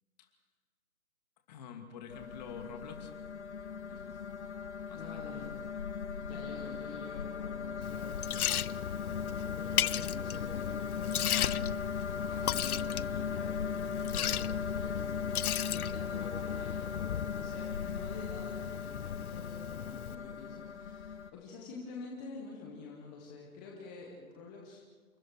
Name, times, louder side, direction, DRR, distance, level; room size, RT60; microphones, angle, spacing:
voice 1, 1.5-3.2 3.9-4.2 4.8-5.5 6.3-6.4, left 6 dB, 30° left, 4 dB, 2.6 m, -48 dB
sound 1, 2.1-21.3, left 6 dB, 50° left, 1.3 m, -38 dB
voice 2, 4.9-5.5 6.2-11.7 12.1-24.8, left 4 dB, 5° left, -2 dB, 0.6 m, -48 dB
Liquid, 7.8-20.1, left 10 dB, 80° left, 0.6 m, -37 dB
28.0 x 23.5 x 4.6 m, 1.5 s
hypercardioid pair, 150°, 43 cm